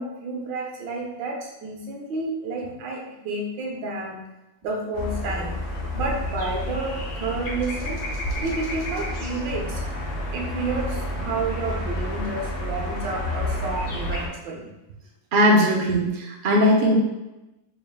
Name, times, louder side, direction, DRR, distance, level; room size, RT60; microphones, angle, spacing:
voice 1, 0.0-4.2 4.6-5.6 5.9-8.0 8.4-9.8 10.3-14.7, right 3 dB, 80° right, 0 dB, 1.4 m, -30 dB
sound 1, 4.9-14.3, left 1 dB, 65° left, 0.6 m, -30 dB
voice 2, 15.3-16.9, equal, 55° right, -3 dB, 0.5 m, -19 dB
5.0 x 3.4 x 2.3 m, 0.98 s
omnidirectional pair, 2.0 m